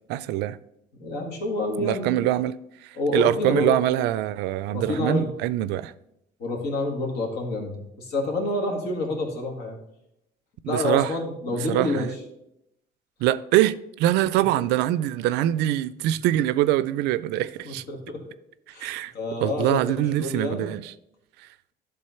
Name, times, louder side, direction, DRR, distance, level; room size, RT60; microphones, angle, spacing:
voice 1, 0.1-0.6 1.8-2.5 2.8-5.9 10.6-11.1 11.7-12.1 13.2-17.8 18.8-19.1 19.4-20.9, right 13 dB, 90° right, 0.4 m, -24 dB
voice 2, 1.0-2.2 3.0-3.7 4.7-5.3 6.4-9.8 10.7-12.1 14.6-14.7 17.6-18.2 18.7-20.7, left 2 dB, 75° left, 2.1 m, -28 dB
11.0 x 3.8 x 5.7 m
cardioid pair, 110°, 17 cm